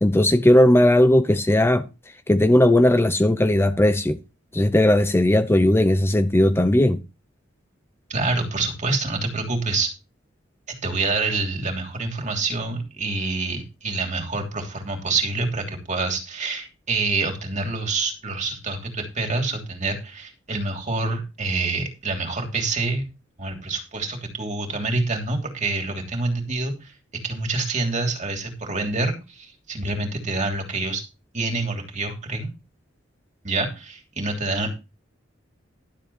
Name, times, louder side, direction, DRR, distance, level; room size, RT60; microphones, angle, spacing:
voice 1, 0.0-1.9 2.3-4.2 4.5-7.0, left 1 dB, 15° left, 0.7 m, -17 dB
voice 2, 8.1-9.9 10.7-23.0 23.4-26.9 27.2-31.0 31.3-32.5 33.4-34.7, right 3 dB, 40° right, 3.0 m, -27 dB
12.0 x 7.6 x 4.3 m
head